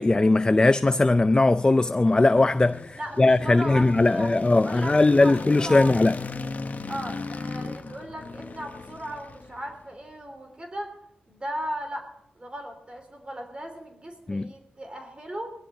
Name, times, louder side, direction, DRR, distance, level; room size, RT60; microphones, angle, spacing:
voice 1, 0.0-6.1 14.3-14.5, left 2 dB, 25° left, 0.4 m, -20 dB
sound 1, 1.4-9.8, left 4 dB, 50° left, 1.1 m, -37 dB
voice 2, 2.9-6.0 6.9-10.9 11.3-12.1 12.3-15.5, equal, 30° right, 3.3 m, -36 dB
20.0 x 13.0 x 4.0 m
cardioid pair, 65°, 3 cm